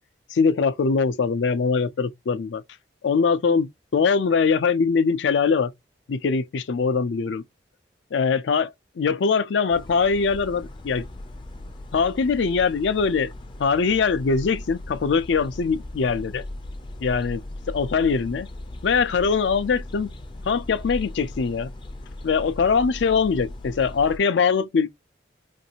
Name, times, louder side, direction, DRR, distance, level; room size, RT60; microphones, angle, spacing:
voice 1, 0.3-2.6 3.0-5.7 6.1-7.4 8.1-11.1 11.9-13.3 13.6-16.4 17.0-17.4 17.7-18.5 18.8-20.1 20.5-21.7 22.2-24.9, left 5 dB, 90° left, 0.4 m, -22 dB
sound 1, 9.7-24.2, left 1 dB, 25° left, 0.4 m, -38 dB
3.0 x 2.6 x 2.8 m
head